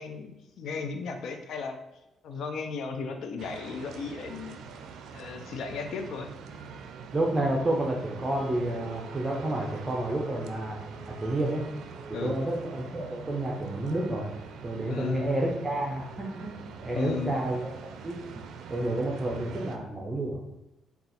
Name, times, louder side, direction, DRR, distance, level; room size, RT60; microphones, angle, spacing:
voice 1, 0.0-1.8 2.2-4.6 5.1-6.3 12.1-12.4 14.9-15.3 16.9-17.3, left 5 dB, 75° left, 6 dB, 0.5 m, -35 dB
sound 1, 3.4-19.8, right 6 dB, 80° right, 0.4 m, -44 dB
voice 2, 7.1-10.8 11.0-11.6 12.2-14.3 14.6-17.7 18.0-18.4 18.7-20.4, right 1 dB, 20° right, -1 dB, 0.6 m, -30 dB
sound 2, 8.3-12.6, right 1 dB, ahead, 1.3 m, -47 dB
3.9 x 2.3 x 4.1 m, 0.93 s
cardioid pair, 90°, 0 cm